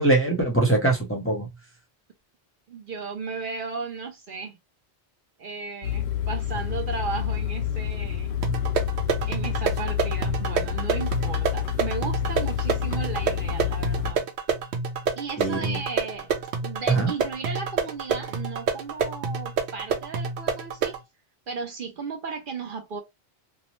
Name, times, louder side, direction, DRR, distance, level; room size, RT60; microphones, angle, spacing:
voice 1, 0.0-1.5 15.4-15.8 16.9-17.1, right 2 dB, 15° left, 0.6 m, -22 dB
voice 2, 2.7-4.6 5.4-8.3 9.2-14.2 15.2-16.3 16.6-21.0 21.5-23.0, right 5 dB, 55° right, 0.7 m, -35 dB
sound 1, 5.8-14.1, left 10 dB, 85° left, 0.9 m, -28 dB
sound 2, 8.4-21.0, right 5 dB, 85° right, 0.9 m, -28 dB
2.7 x 2.0 x 2.9 m
omnidirectional pair, 1.1 m